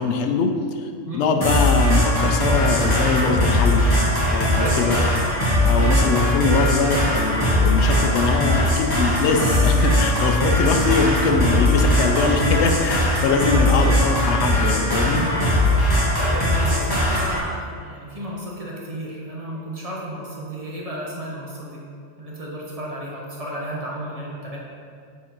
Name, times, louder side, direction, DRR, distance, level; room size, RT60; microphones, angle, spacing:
voice 1, 0.0-3.9 4.3-5.0 5.6-15.3, left 4 dB, 70° left, 5 dB, 0.9 m, -22 dB
sound 1, 1.4-17.4, left 1 dB, 20° left, 1.3 m, -20 dB
voice 2, 4.6-5.0 13.5-13.9 16.2-21.8 22.2-24.6, right 1 dB, 30° right, -4 dB, 1.0 m, -32 dB
7.1 x 3.7 x 4.3 m, 2.2 s
omnidirectional pair, 1.3 m